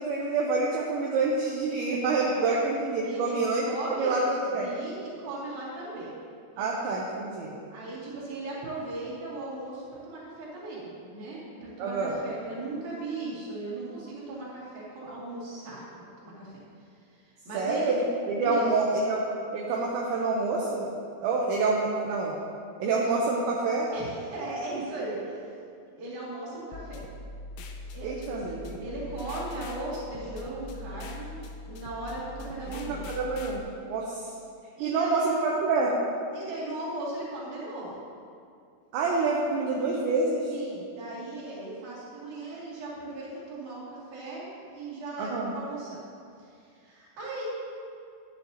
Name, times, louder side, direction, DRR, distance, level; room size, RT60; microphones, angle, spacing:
voice 1, 0.0-4.7 6.6-7.6 11.8-12.2 17.5-19.2 19.5-20.9 21.2-22.3 22.8-23.9 28.0-28.8 32.9-33.6 33.9-34.3 34.8-35.9 38.9-40.5 45.2-45.5, right 3 dB, 75° right, -3 dB, 2.9 m, -27 dB
voice 2, 3.0-6.1 6.5-6.8 7.7-16.6 17.0-17.9 18.4-18.8 23.9-25.5 25.9-27.0 27.9-33.0 34.8-35.2 36.3-37.9 40.5-46.0 46.4-47.4, right 2 dB, 45° right, -7 dB, 3.3 m, -38 dB
sound 1, 26.7-33.6, left 2 dB, 85° left, 2.6 m, -42 dB
13.5 x 10.5 x 2.9 m, 2.4 s
omnidirectional pair, 5.8 m